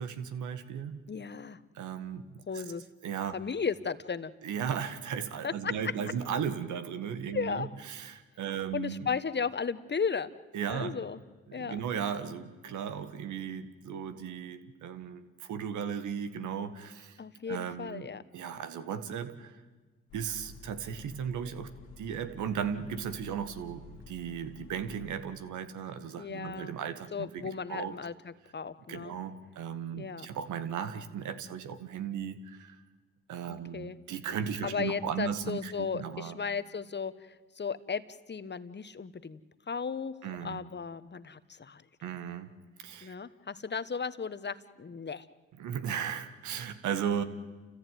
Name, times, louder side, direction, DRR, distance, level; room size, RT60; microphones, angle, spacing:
voice 1, 0.0-1.0 1.8-2.7 3.0-3.3 4.4-9.1 10.5-11.0 11.5-17.2 17.5-19.6 20.1-28.0 28.9-32.8 33.3-36.4 40.2-40.6 42.0-42.5 42.8-43.1 45.6-47.2, right 8 dB, 75° right, 10 dB, 1.7 m, -36 dB
voice 2, 1.1-1.6 2.5-2.8 3.3-4.3 5.4-5.7 7.3-7.7 8.7-10.3 10.7-11.2 11.5-11.8 17.2-18.2 26.2-26.8 27.1-29.1 30.0-30.3 33.5-34.0 34.6-38.0 38.3-39.4 39.7-40.2 40.4-41.8 43.0-45.3, left 5 dB, 35° left, 13 dB, 1.3 m, -35 dB
sound 1, 20.1-25.1, left 5 dB, 90° left, 1.8 m, -51 dB
29.5 x 14.5 x 9.4 m, 1.3 s
supercardioid pair, 50°, 30 cm